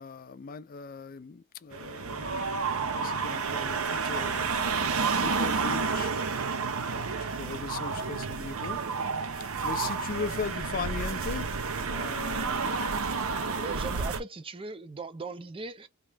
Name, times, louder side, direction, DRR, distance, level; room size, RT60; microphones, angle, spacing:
voice 1, 0.0-6.1 6.9-8.8 9.6-11.5 11.8-12.8, left 5 dB, 40° left, 0.4 m, -39 dB
sound 1, 1.7-14.2, right 4 dB, 70° right, 0.7 m, -30 dB
voice 2, 13.5-15.9, right 4 dB, 25° right, 0.5 m, -39 dB
3.1 x 3.1 x 3.3 m
head